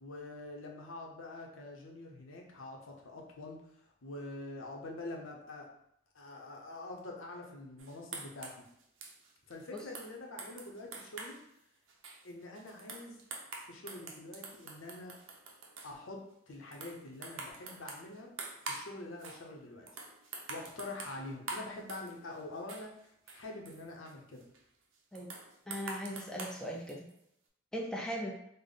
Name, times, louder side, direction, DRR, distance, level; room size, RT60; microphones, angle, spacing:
voice 1, 0.0-3.6 4.0-5.7 6.1-8.7 9.5-11.4 12.2-13.2 13.7-15.1 15.8-18.3 18.7-19.9 20.5-23.0 23.3-24.5, left 2 dB, 90° left, 1 dB, 0.7 m, -45 dB
sound 1, 7.8-11.4 11.9-16.0 16.5-18.9 19.2-19.4 19.9-22.4 22.7-24.6 25.2-27.2, right 3 dB, 80° right, 0.6 m, -46 dB
voice 2, 25.7-27.1 27.7-28.4, equal, 5° left, -2 dB, 0.4 m, -38 dB
3.4 x 2.0 x 3.8 m, 0.76 s
head